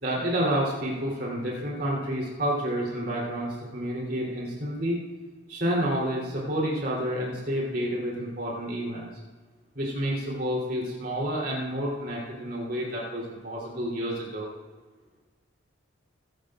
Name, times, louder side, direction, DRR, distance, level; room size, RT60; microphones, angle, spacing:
voice 1, 0.0-5.0 5.5-9.1 9.7-14.5, equal, 50° right, -5 dB, 3.5 m, -29 dB
23.0 x 12.0 x 2.5 m, 1.4 s
head